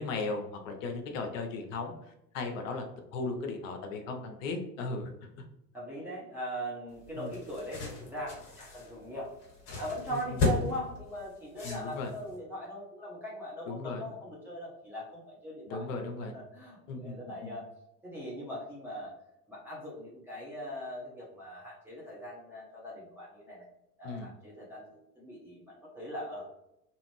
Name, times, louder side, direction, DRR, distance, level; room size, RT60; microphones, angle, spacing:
voice 1, 0.0-1.9 2.3-2.8 3.1-5.1 7.1-7.3 10.1-10.5 11.6-12.1 13.7-14.1 15.7-16.3 16.9-17.6 24.0-24.3, left 3 dB, 50° left, 4 dB, 0.7 m, -36 dB
voice 2, 5.7-9.3 9.8-17.7 18.0-19.1 19.5-23.7 24.0-26.5, equal, 5° right, -7 dB, 0.4 m, -40 dB
sound 1, 6.9-12.3, left 3 dB, 35° left, 1.2 m, -35 dB
2.6 x 2.5 x 3.0 m, 0.83 s
figure-of-eight pair, 75°, 49 cm